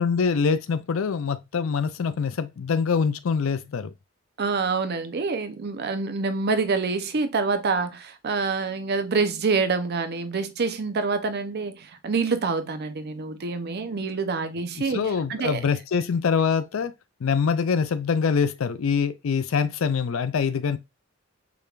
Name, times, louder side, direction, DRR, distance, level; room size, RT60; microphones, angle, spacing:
voice 1, 0.0-3.9 14.9-16.9 17.2-20.8, left 6 dB, 70° left, 0.4 m, -24 dB
voice 2, 4.4-15.6, right 4 dB, 50° right, 0.6 m, -26 dB
4.8 x 3.3 x 2.4 m
head